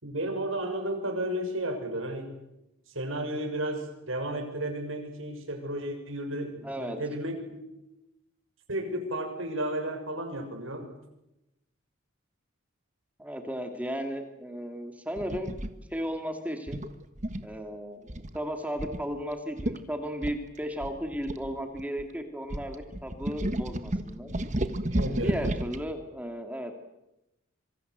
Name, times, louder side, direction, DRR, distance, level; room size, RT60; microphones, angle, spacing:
voice 1, 0.0-2.4 2.9-7.6 8.7-10.9 24.8-25.4, right 1 dB, 70° right, 4 dB, 6.5 m, -33 dB
voice 2, 6.6-7.0 13.2-15.6 15.9-16.9 17.4-18.1 18.3-24.3 25.1-26.8, equal, 5° right, 5 dB, 2.3 m, -35 dB
sound 1, 15.2-15.7 16.7-17.6 18.1-18.4 18.8-19.0 19.3-19.4 19.6-19.8 20.2-22.0 22.5-25.8, right 1 dB, 35° right, 1.5 m, -32 dB
26.5 x 24.0 x 8.1 m, 0.91 s
head